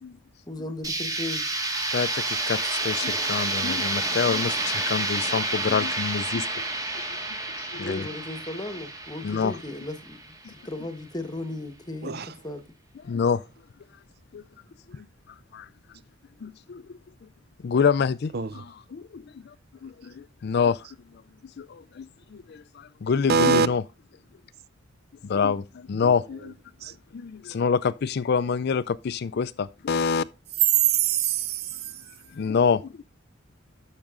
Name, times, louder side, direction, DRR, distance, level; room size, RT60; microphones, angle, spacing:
voice 1, 0.5-1.5 7.7-12.6, left 2 dB, 20° left, 1.2 m, -36 dB
sound 1, 0.8-10.6, right 2 dB, 20° right, 1.7 m, -29 dB
voice 2, 1.9-6.6 6.9-7.3 7.6-8.0 9.2-9.5 13.1-13.4 14.3-14.4 14.9-15.0 15.5-15.7 16.4-16.8 17.6-19.2 19.8-20.8 21.6-23.8 25.2-26.5 27.1-30.2 32.3-33.0, left 6 dB, 55° left, 0.4 m, -27 dB
voice 3, 23.3-23.7 26.0-26.1 26.8-26.9 30.9-31.6, right 6 dB, 50° right, 0.5 m, -23 dB
12.0 x 6.5 x 3.7 m
head